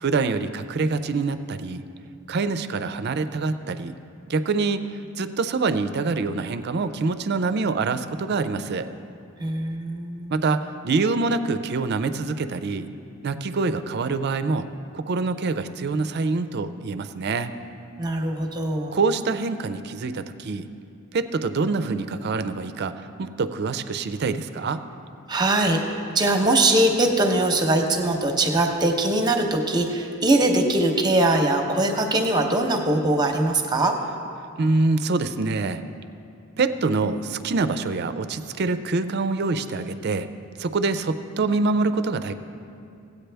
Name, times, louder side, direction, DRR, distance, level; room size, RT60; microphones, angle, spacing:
voice 1, 0.0-1.9 2.3-4.0 4.3-8.9 10.3-12.9 13.2-17.5 18.9-20.7 21.1-24.8 34.6-35.8 36.6-40.3 40.6-42.3, right 3 dB, 50° right, 11 dB, 0.4 m, -25 dB
voice 2, 9.4-10.4 18.0-19.0 25.3-34.0, right 2 dB, 20° right, 3 dB, 0.8 m, -22 dB
17.0 x 8.3 x 3.4 m, 2.6 s
head